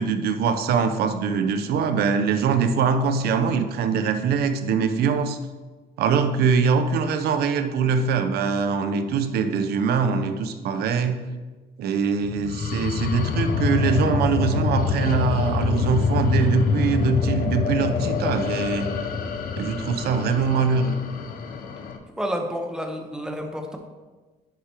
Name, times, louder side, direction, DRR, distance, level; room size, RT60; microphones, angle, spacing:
voice 1, 0.0-5.4 6.0-11.3 11.8-18.9 19.5-20.9, right 5 dB, 70° right, 8 dB, 0.7 m, -23 dB
sound 1, 12.2-22.0, left 5 dB, 60° left, 0.7 m, -25 dB
voice 2, 22.2-23.8, equal, 5° right, 3 dB, 0.9 m, -29 dB
10.5 x 4.9 x 2.9 m, 1.3 s
cardioid pair, 110°, 17 cm